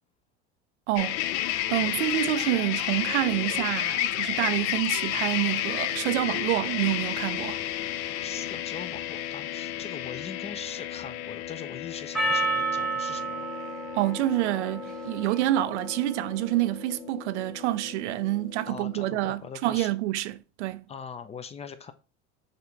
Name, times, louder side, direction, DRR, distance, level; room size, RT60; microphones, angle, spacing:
voice 1, 0.9-1.2 1.7-7.6 13.9-20.8, right 15 dB, 90° right, 0.5 m, -27 dB
sound 1, 1.0-19.4, left 13 dB, 70° left, 0.5 m, -32 dB
voice 2, 8.2-13.5 18.7-20.0 20.9-21.9, left 6 dB, 20° left, 0.3 m, -41 dB
Percussion, 12.1-16.7, right 3 dB, ahead, 0.9 m, -32 dB
6.7 x 2.5 x 3.0 m
supercardioid pair, 110°, 33 cm